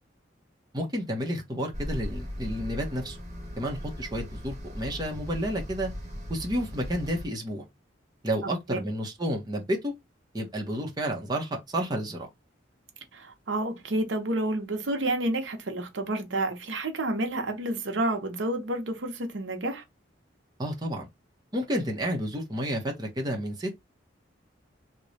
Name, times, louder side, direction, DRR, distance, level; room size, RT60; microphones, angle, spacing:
voice 1, 0.7-3.2 3.6-5.9 6.3-7.6 8.2-9.9 10.3-12.3 20.6-21.1 21.5-23.8, equal, 20° right, 0.8 m, -31 dB
sound 1, 1.7-7.3, equal, 40° right, 1.1 m, -38 dB
voice 2, 13.1-19.8, right 1 dB, 90° right, 0.8 m, -29 dB
3.1 x 2.2 x 3.9 m
head